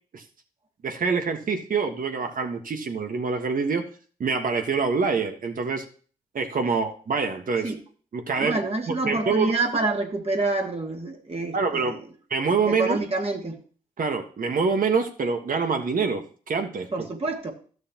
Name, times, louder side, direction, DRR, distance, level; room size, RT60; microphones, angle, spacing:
voice 1, 0.8-3.9 4.2-5.8 6.3-7.7 8.1-8.6 8.9-9.5 11.5-12.0 12.3-13.0 14.0-17.1, right 5 dB, 60° right, 6 dB, 1.5 m, -25 dB
voice 2, 8.4-12.0 12.7-13.6 16.9-17.5, right 2 dB, 40° right, 1 dB, 2.1 m, -27 dB
13.0 x 6.4 x 3.0 m, 0.42 s
supercardioid pair, 45°, 16 cm